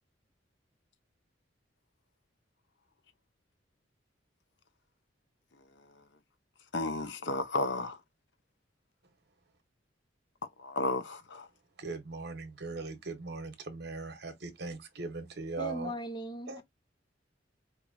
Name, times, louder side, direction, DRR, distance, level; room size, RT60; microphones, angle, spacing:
voice 1, 6.7-8.0 10.6-11.5, left 3 dB, 65° left, 0.7 m, -32 dB
voice 2, 11.8-15.9 16.5-16.6, right 3 dB, 60° right, 1.0 m, -39 dB
voice 3, 15.6-16.6, equal, 25° left, 0.6 m, -38 dB
4.6 x 2.6 x 2.6 m
head